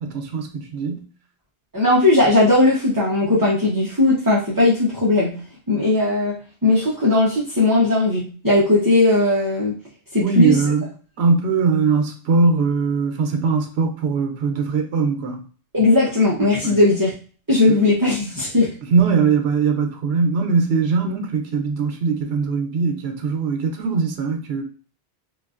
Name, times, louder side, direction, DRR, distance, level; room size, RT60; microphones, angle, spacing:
voice 1, 0.0-1.0 10.2-10.9 11.2-15.4 16.6-16.8 17.7-17.8 18.9-24.6, right 5 dB, 75° right, 5 dB, 0.9 m, -21 dB
voice 2, 1.7-5.3 5.7-6.4 6.6-9.7 10.1-10.5 15.7-17.1 17.5-18.7, left 2 dB, 20° right, -6 dB, 0.8 m, -17 dB
3.8 x 2.5 x 2.4 m, 0.38 s
omnidirectional pair, 1.1 m